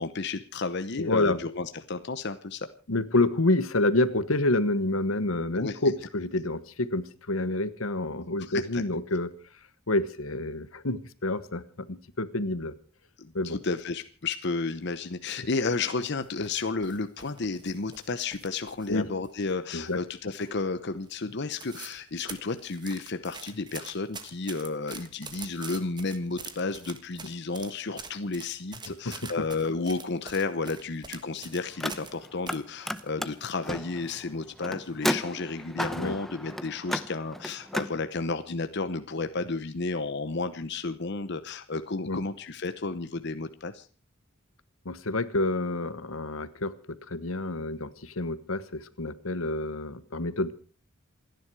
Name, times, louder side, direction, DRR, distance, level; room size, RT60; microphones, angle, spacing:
voice 1, 0.0-2.7 5.6-5.8 8.4-8.8 13.2-43.9, left 3 dB, 55° left, 10 dB, 0.9 m, -32 dB
voice 2, 1.0-1.4 2.9-9.3 9.9-12.7 13.3-13.6 18.9-19.1 19.7-20.0 29.0-29.3 35.9-36.2 42.1-42.2 44.8-50.5, left 2 dB, 85° left, 14 dB, 1.3 m, -28 dB
sound 1, 16.2-19.0 19.2-20.0 20.4-20.7 21.1-21.2 21.4-22.0 22.3-32.2 32.5-33.7 34.0-34.1 34.8-35.1 35.5-35.7, right 5 dB, 20° right, 1.5 m, -45 dB
Car, 31.7-32.6 32.8-37.9, equal, ahead, 0.8 m, -33 dB
28.0 x 10.5 x 4.8 m, 0.39 s
head